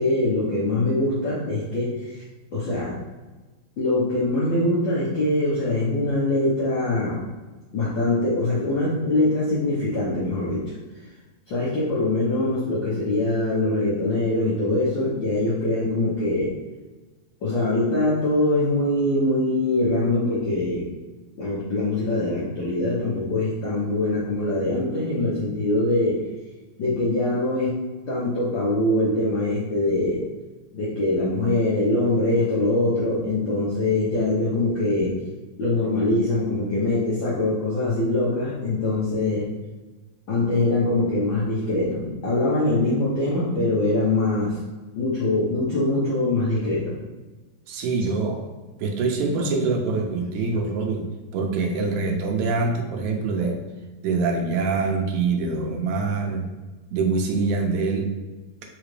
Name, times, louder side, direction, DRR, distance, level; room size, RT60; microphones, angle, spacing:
voice 1, 0.0-2.2 2.5-2.9 3.8-7.2 7.7-10.6 11.5-16.5 17.4-20.9 21.4-26.2 26.8-27.8 28.1-30.2 30.7-35.2 35.6-39.5 40.3-44.6 45.0-46.9, left 2 dB, 70° left, -8 dB, 1.1 m, -23 dB
voice 2, 47.7-48.5 48.8-51.0 51.3-53.6 54.0-56.5 56.9-58.1, right 4 dB, 80° right, 3 dB, 2.0 m, -24 dB
4.9 x 3.2 x 3.2 m, 1.2 s
omnidirectional pair, 3.3 m